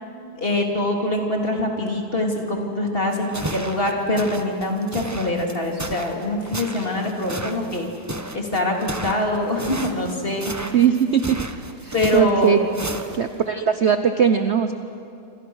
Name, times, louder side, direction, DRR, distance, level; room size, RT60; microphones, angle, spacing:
voice 1, 0.4-7.9 8.3-10.5 11.9-12.6, left 1 dB, 25° left, 1 dB, 3.2 m, -24 dB
sound 1, 3.1-13.4, right 1 dB, 15° right, 0.5 m, -33 dB
voice 2, 10.7-11.4 11.8-12.6 13.1-14.7, right 7 dB, 60° right, 8 dB, 0.7 m, -19 dB
28.0 x 26.5 x 6.4 m, 2.6 s
omnidirectional pair, 2.3 m